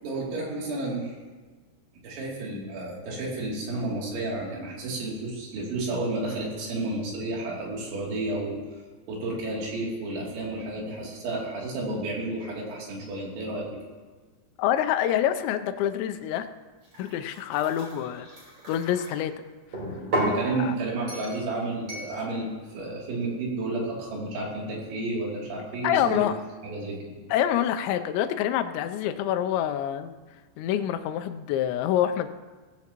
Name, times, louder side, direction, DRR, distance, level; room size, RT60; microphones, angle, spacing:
voice 1, 0.0-1.2 2.0-8.5 9.1-13.7 20.1-26.2 26.6-27.2, right 2 dB, 75° right, -3 dB, 5.2 m, -31 dB
voice 2, 14.6-16.5 17.0-18.3 18.7-19.3 20.6-20.7 25.8-26.3 27.3-30.2 30.6-32.3, left 10 dB, 80° left, 8 dB, 2.8 m, -26 dB
sound 1, 16.8-19.1 19.7-20.4 21.1-21.4 21.9-22.1, right 1 dB, 25° right, 3.8 m, -32 dB
17.5 x 15.5 x 3.0 m, 1.3 s
omnidirectional pair, 5.3 m